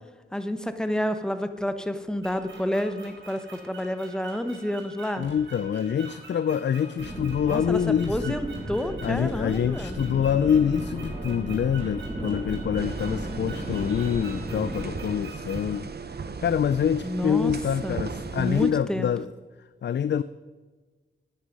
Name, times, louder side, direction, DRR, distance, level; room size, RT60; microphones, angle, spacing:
voice 1, 0.3-5.3 7.4-7.8 8.1-10.0 17.0-17.5 17.8-18.0 18.4-19.1, equal, 5° left, 9 dB, 1.0 m, -29 dB
sound 1, 2.2-15.8, right 4 dB, 70° right, 3.1 m, -46 dB
voice 2, 5.2-8.4 9.0-15.9 16.4-19.3 19.8-20.2, left 8 dB, 60° left, 15 dB, 0.4 m, -26 dB
sound 2, 7.0-14.9, right 1 dB, 35° right, 2.9 m, -35 dB
sound 3, 12.8-18.7, right 5 dB, 55° right, 0.9 m, -37 dB
9.6 x 9.3 x 5.3 m, 1.3 s
cardioid pair, 55°, 20 cm